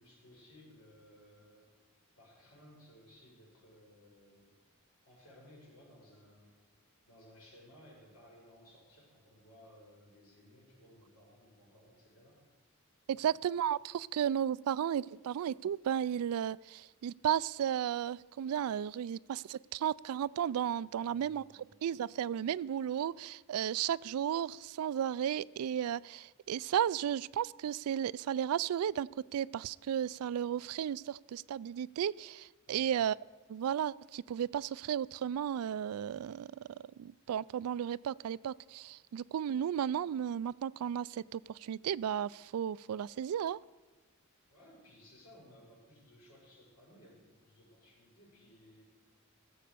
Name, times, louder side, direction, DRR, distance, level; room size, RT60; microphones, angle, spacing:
voice 1, 0.0-1.8 2.2-4.5 5.0-6.7 7.0-12.4 13.1-13.3 21.0-21.6 32.7-33.0 44.5-49.0, left 1 dB, 80° left, -3 dB, 5.8 m, -59 dB
voice 2, 13.1-21.4 21.8-33.2 33.5-43.6, right 9 dB, 90° right, 22 dB, 0.3 m, -34 dB
17.0 x 7.4 x 6.8 m, 1.3 s
head